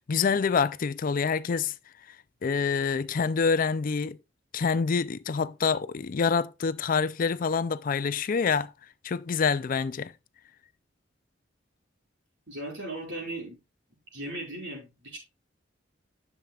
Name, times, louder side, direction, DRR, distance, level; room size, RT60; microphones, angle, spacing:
voice 1, 0.0-1.7 2.4-4.2 4.5-8.7 9.0-10.1, left 5 dB, 45° left, 0.4 m, -26 dB
voice 2, 12.5-13.6 14.1-15.2, right 1 dB, 85° right, 5.2 m, -37 dB
10.5 x 7.2 x 2.4 m
head